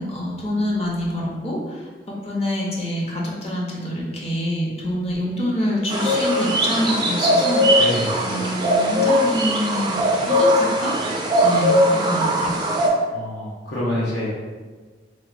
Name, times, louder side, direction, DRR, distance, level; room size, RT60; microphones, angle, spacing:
voice 1, 0.0-7.9 8.2-10.9 11.4-12.6, left 1 dB, 35° left, -4 dB, 0.5 m, -26 dB
sound 1, 5.9-12.9, equal, 25° right, 0.3 m, -20 dB
voice 2, 7.8-8.1 13.1-14.4, left 1 dB, 85° left, -8 dB, 0.7 m, -26 dB
3.1 x 2.1 x 2.5 m, 1.4 s
head